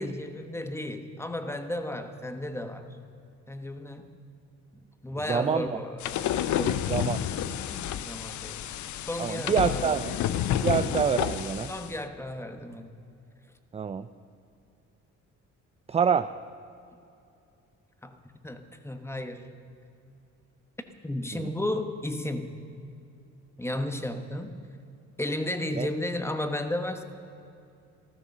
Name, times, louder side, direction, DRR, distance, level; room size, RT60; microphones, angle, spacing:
voice 1, 0.0-2.9 3.5-4.1 5.0-7.1 7.9-8.6 9.0-10.0 10.6-10.9 11.7-12.9 18.0-19.5 21.0-22.6 23.6-24.5 25.2-27.0, left 1 dB, 10° left, 8 dB, 1.2 m, -34 dB
voice 2, 5.3-5.7 6.9-7.2 9.2-10.1 10.5-11.7 13.7-14.1 15.9-16.3 21.3-21.5 25.8-25.9, right 7 dB, 20° right, 12 dB, 0.4 m, -26 dB
sound 1, 6.0-11.9, left 10 dB, 70° left, 0.7 m, -30 dB
14.5 x 13.0 x 6.8 m, 2.6 s
cardioid pair, 90°, 30 cm